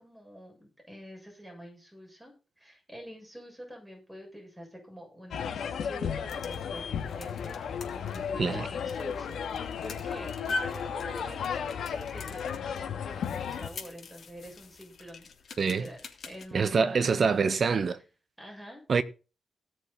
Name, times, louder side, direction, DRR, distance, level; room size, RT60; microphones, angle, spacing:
voice 1, 0.0-15.3 15.6-17.8 18.4-18.8, equal, 5° right, 7.3 m, -47 dB
sound 1, 5.3-13.7, left 7 dB, 80° left, 2.2 m, -34 dB
sound 2, 6.0-16.5, left 3 dB, 55° left, 3.3 m, -43 dB
voice 2, 15.6-15.9 16.5-18.0 18.9-19.0, right 5 dB, 45° right, 1.4 m, -25 dB
18.5 x 7.0 x 4.0 m
wide cardioid pair, 135°, 0 cm